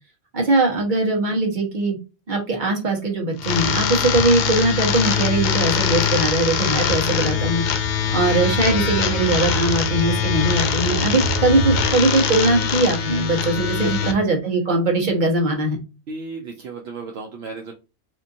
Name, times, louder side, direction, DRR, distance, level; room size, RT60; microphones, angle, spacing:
voice 1, 0.3-2.0 2.3-7.6 7.9-15.8, right 2 dB, 45° right, 1 dB, 1.3 m, -21 dB
sound 1, 3.4-14.1, left 8 dB, 60° left, 0.5 m, -23 dB
sound 2, 5.1-11.9, right 2 dB, 75° left, 1.1 m, -30 dB
voice 2, 13.6-14.2 16.1-17.7, right 4 dB, 70° right, 1 dB, 0.9 m, -34 dB
4.2 x 2.5 x 2.6 m, 0.29 s
omnidirectional pair, 1.1 m